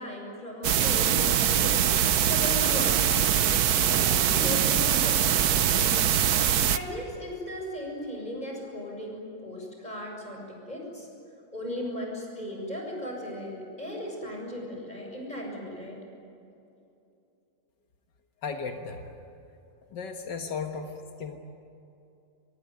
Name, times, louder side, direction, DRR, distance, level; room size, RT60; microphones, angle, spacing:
voice 1, 0.0-3.1 3.8-5.8 6.7-11.1 11.5-16.0, left 1 dB, 25° left, 0 dB, 7.2 m, -37 dB
sound 1, 0.6-6.8, right 9 dB, 65° right, 1.3 m, -23 dB
voice 2, 18.4-19.1 19.9-21.4, left 5 dB, 85° left, 4 dB, 2.1 m, -35 dB
26.0 x 22.5 x 9.5 m, 2.7 s
omnidirectional pair, 1.8 m